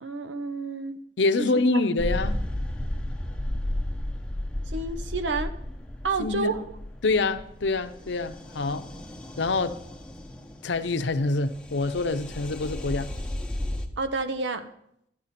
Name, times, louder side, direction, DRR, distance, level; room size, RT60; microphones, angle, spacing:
voice 1, 0.0-1.0 1.4-1.5 4.7-5.5 6.0-6.7 14.0-14.7, right 3 dB, 75° right, 0.8 m, -29 dB
voice 2, 1.2-2.4 6.2-6.5 7.0-8.8 9.4-9.8 10.6-13.1, left 3 dB, 75° left, 0.7 m, -26 dB
sound 1, 2.0-13.9, left 1 dB, 5° left, 0.7 m, -34 dB
12.0 x 9.5 x 4.2 m
head